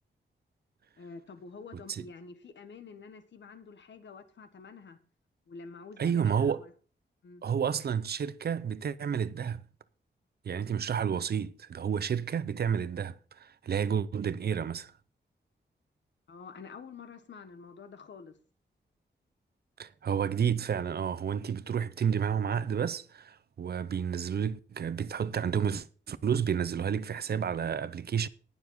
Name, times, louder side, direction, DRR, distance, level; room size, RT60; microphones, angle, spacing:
voice 1, 1.0-5.0 5.5-6.7 7.2-7.4 16.3-18.4, left 4 dB, 70° left, 1.5 m, -48 dB
voice 2, 6.0-6.7 7.4-9.7 10.4-14.9 19.8-28.3, right 7 dB, 55° right, 0.6 m, -30 dB
19.0 x 7.0 x 3.9 m
wide cardioid pair, 165°, 19 cm